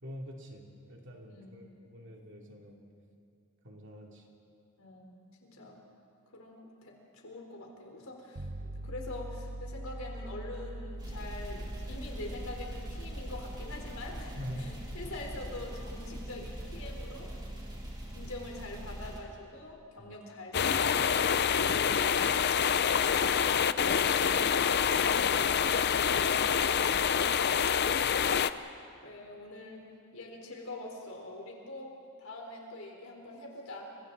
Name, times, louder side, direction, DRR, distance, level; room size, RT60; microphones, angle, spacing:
voice 1, 0.0-2.8 3.6-4.2 14.4-14.7 20.0-20.1 26.0-27.3, equal, 55° right, 0 dB, 2.9 m, -45 dB
voice 2, 1.3-1.7 4.8-5.8 6.3-17.3 18.1-22.2 22.9-25.8 29.0-29.9 30.1-31.9 32.2-33.9, left 2 dB, 75° left, 0 dB, 4.2 m, -44 dB
sound 1, 8.4-18.5, right 1 dB, 90° right, 1.3 m, -44 dB
sound 2, 11.0-19.2, equal, 20° right, 3.3 m, -42 dB
sound 3, 20.5-28.5, left 7 dB, 50° left, 0.5 m, -26 dB
30.0 x 24.5 x 4.1 m, 2.4 s
head